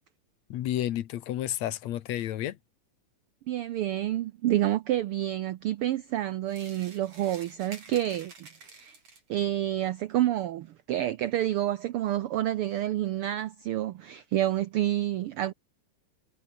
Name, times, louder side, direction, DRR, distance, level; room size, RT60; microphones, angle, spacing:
voice 1, 0.5-2.6, left 12 dB, 70° left, 2.3 m, -31 dB
voice 2, 3.5-9.0 9.3-15.5, right 13 dB, 80° right, 1.2 m, -29 dB
sound 1, 6.5-9.4, right 4 dB, 55° right, 7.1 m, -49 dB
omnidirectional pair, 3.3 m